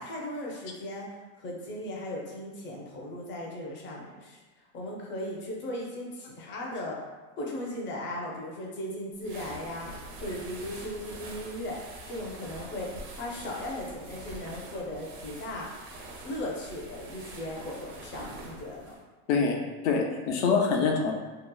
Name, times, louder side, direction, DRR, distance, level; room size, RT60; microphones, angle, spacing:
voice 1, 0.0-4.4 4.7-7.0 7.4-9.9 10.2-11.8 12.1-15.8 16.2-19.0, left 1 dB, 30° left, -2 dB, 0.5 m, -37 dB
sound 1, 9.2-19.0, right 2 dB, 60° right, 0.7 m, -44 dB
voice 2, 19.8-21.1, left 5 dB, 75° left, 1 dB, 0.6 m, -25 dB
2.8 x 2.0 x 2.2 m, 1.3 s
supercardioid pair, 130°, 40 cm